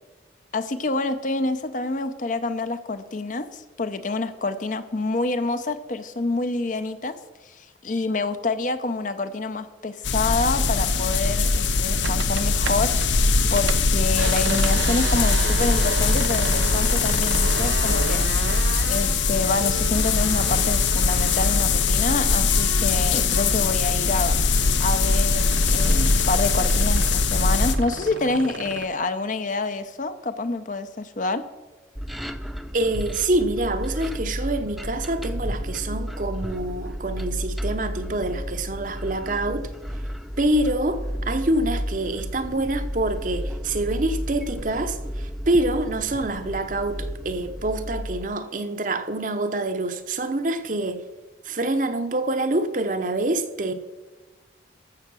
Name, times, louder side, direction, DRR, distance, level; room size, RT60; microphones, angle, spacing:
voice 1, 0.5-7.2 7.4-13.2 13.5-18.3 18.9-24.4 24.8-31.4, left 3 dB, 45° left, 0.7 m, -27 dB
sound 1, 10.0-27.8, left 4 dB, 80° left, 0.8 m, -21 dB
sound 2, 12.0-13.1 13.4-23.8 24.1-28.9, right 6 dB, 70° right, 0.4 m, -34 dB
sound 3, 32.0-48.2, equal, ahead, 0.4 m, -32 dB
voice 2, 32.7-39.7 40.4-51.0 51.4-53.7, right 2 dB, 45° right, 0.8 m, -26 dB
14.0 x 6.6 x 6.1 m
head